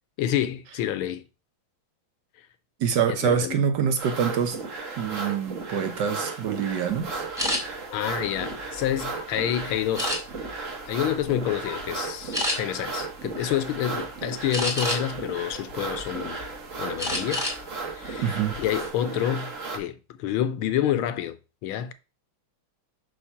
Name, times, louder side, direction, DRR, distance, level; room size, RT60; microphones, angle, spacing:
voice 1, 0.2-1.3 3.1-3.6 7.9-10.2 10.9-16.4 16.8-17.5 17.9-21.9, left 11 dB, 85° left, 1.5 m, -28 dB
voice 2, 2.8-4.6 5.0-7.2 18.2-18.6, right 7 dB, 65° right, 1.2 m, -25 dB
sound 1, 4.0-19.8, right 4 dB, 45° right, 1.3 m, -35 dB
sound 2, 7.4-7.6 8.2-9.2 10.0-10.5 11.1-11.3 11.7-11.8 12.3-12.6 14.5-15.2 15.7-16.5 17.0-17.6 17.9-18.1 18.5-18.9, left 1 dB, ahead, 1.9 m, -29 dB
6.3 x 3.2 x 5.6 m
omnidirectional pair, 2.3 m